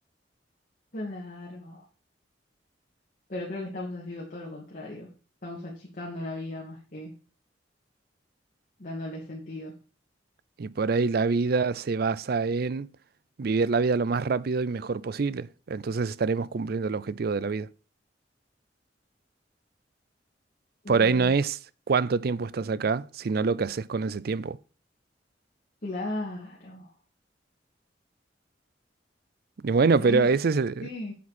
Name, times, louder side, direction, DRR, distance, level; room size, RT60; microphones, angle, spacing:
voice 1, 0.9-1.9 3.3-5.1 5.4-7.1 8.8-9.7 20.8-21.3 25.8-26.9 30.0-30.3 30.8-31.1, left 1 dB, 50° left, 2.5 m, -36 dB
voice 2, 10.6-12.9 13.4-17.7 20.9-21.6 21.9-24.6 29.6-30.9, right 4 dB, 60° right, 0.5 m, -25 dB
8.4 x 7.3 x 4.3 m
head